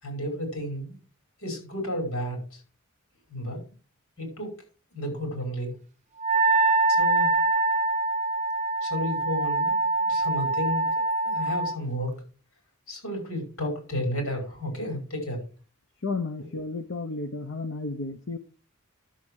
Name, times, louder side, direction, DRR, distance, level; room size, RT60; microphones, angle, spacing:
voice 1, 0.0-1.0 1.4-2.6 3.3-3.6 4.2-4.5 4.9-5.7 6.9-7.4 8.8-12.2 12.9-15.4, equal, 80° left, 2 dB, 5.6 m, -32 dB
Wind instrument woodwind instrument, 6.2-11.8, right 2 dB, 30° right, 0.5 m, -24 dB
voice 2, 16.0-18.4, left 3 dB, 60° left, 7 dB, 0.9 m, -32 dB
12.0 x 7.3 x 4.8 m, 0.37 s
head